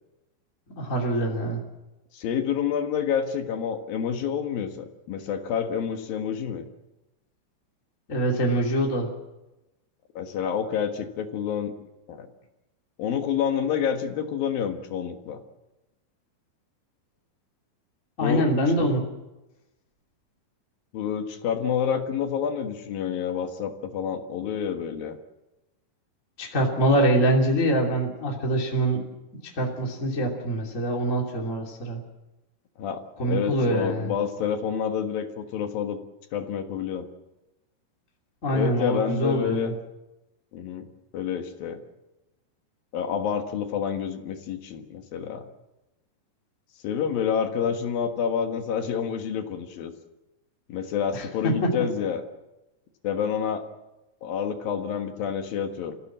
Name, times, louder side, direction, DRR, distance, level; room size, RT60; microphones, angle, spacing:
voice 1, 0.8-1.6 8.1-9.1 18.2-19.0 26.4-29.1 29.4-32.0 33.2-34.1 38.4-39.7 51.1-51.7, right 1 dB, 20° left, -1 dB, 2.6 m, -24 dB
voice 2, 2.1-6.7 10.1-11.7 12.1-12.3 13.0-15.4 18.2-18.5 20.9-25.2 32.8-36.0 36.3-37.1 38.5-39.7 40.5-40.9 41.1-41.8 42.9-45.5 46.8-49.9 50.7-52.2 53.0-53.6 54.2-55.9, left 7 dB, 60° left, 6 dB, 3.0 m, -28 dB
30.0 x 16.0 x 7.5 m, 1.0 s
omnidirectional pair, 5.1 m